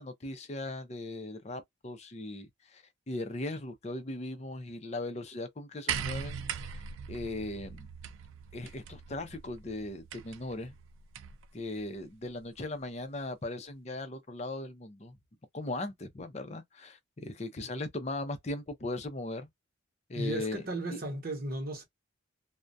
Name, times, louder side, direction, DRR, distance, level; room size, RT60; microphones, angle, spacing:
voice 1, 0.0-6.8 7.1-7.9 8.5-10.8 11.5-15.2 15.5-19.5 20.1-20.6 20.9-21.0, left 2 dB, 35° left, 0.5 m, -38 dB
sound 1, 5.9-11.5 12.6-12.7, right 7 dB, 75° right, 0.3 m, -40 dB
voice 2, 20.1-21.8, right 2 dB, 45° right, 0.9 m, -35 dB
2.2 x 2.1 x 2.6 m
head